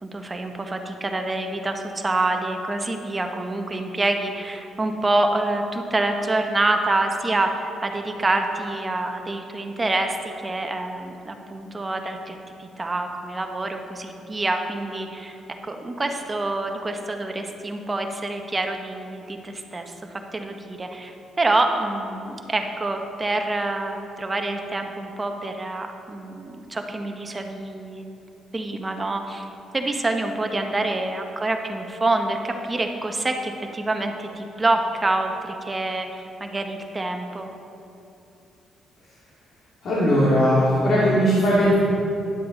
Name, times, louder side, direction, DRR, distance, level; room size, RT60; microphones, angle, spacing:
voice 1, 0.0-15.4 15.6-28.1 28.5-37.5, right 2 dB, 25° right, 4 dB, 0.9 m, -26 dB
voice 2, 39.8-41.7, equal, 60° left, -8 dB, 2.1 m, -18 dB
10.5 x 7.6 x 3.8 m, 2.7 s
cardioid pair, 90°, 0 cm